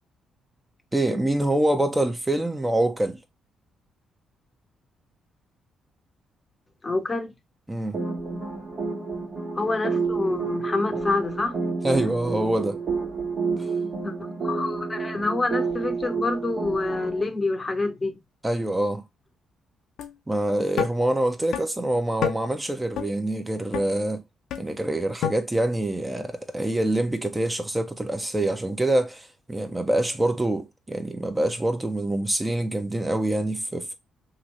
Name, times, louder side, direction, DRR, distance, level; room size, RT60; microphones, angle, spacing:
voice 1, 0.9-3.2 7.7-8.0 11.8-12.8 13.6-13.7 18.4-19.0 20.3-24.2 24.6-34.0, right 1 dB, 15° right, 0.7 m, -25 dB
voice 2, 6.8-7.3 9.5-11.6 14.0-14.1 14.4-18.2, left 3 dB, 30° left, 0.7 m, -27 dB
sound 1, 7.9-17.2, right 4 dB, 55° right, 1.3 m, -29 dB
sound 2, 20.0-20.1 20.8-20.9 21.5-21.6 22.2-22.3 23.0-23.1 23.7-23.9 24.5-24.6 25.2-25.3, left 10 dB, 70° left, 0.4 m, -27 dB
2.9 x 2.6 x 3.0 m
hypercardioid pair, 45°, 0 cm